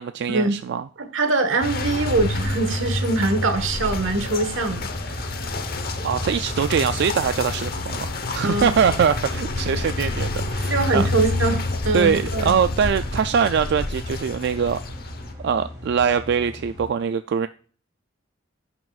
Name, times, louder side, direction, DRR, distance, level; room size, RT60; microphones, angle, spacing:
voice 1, 0.0-0.8 6.0-11.1 11.9-14.8 15.4-17.5, right 7 dB, 60° right, 10 dB, 0.3 m, -22 dB
voice 2, 1.0-4.9 8.4-8.7 10.7-12.6, right 2 dB, 85° right, 8 dB, 1.3 m, -23 dB
sound 1, 1.6-15.3, left 2 dB, 50° left, 0.9 m, -28 dB
sound 2, 3.6-16.9, left 1 dB, 20° right, 3.4 m, -39 dB
16.0 x 5.9 x 2.4 m, 0.42 s
head